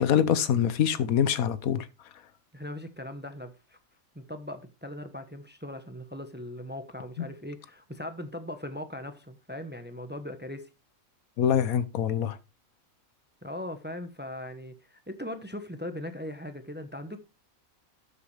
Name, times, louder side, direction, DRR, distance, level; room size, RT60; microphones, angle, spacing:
voice 1, 0.0-1.8 7.2-7.3 11.4-12.4, left 9 dB, 90° left, 1.3 m, -24 dB
voice 2, 2.5-3.8 4.1-10.7 13.4-17.2, left 1 dB, 10° right, 0.9 m, -39 dB
12.5 x 6.9 x 3.3 m
omnidirectional pair, 1.5 m